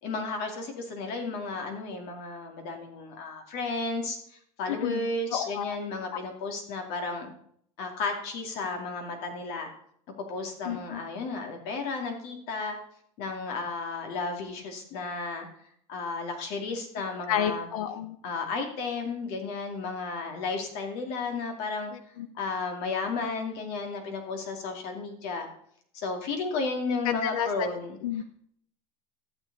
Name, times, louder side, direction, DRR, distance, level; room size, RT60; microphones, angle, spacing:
voice 1, 0.0-7.3 7.8-9.7 10.3-12.8 13.2-15.5 15.9-17.7 18.2-21.9 22.3-25.5 25.9-28.2, left 3 dB, 60° left, 3 dB, 2.4 m, -33 dB
voice 2, 4.7-5.1 5.3-5.8 10.6-11.0 17.3-18.2 22.2-22.3 27.0-27.7 28.0-28.2, left 9 dB, 85° left, 12 dB, 0.9 m, -30 dB
14.0 x 6.9 x 4.0 m, 0.66 s
supercardioid pair, 115°, 18 cm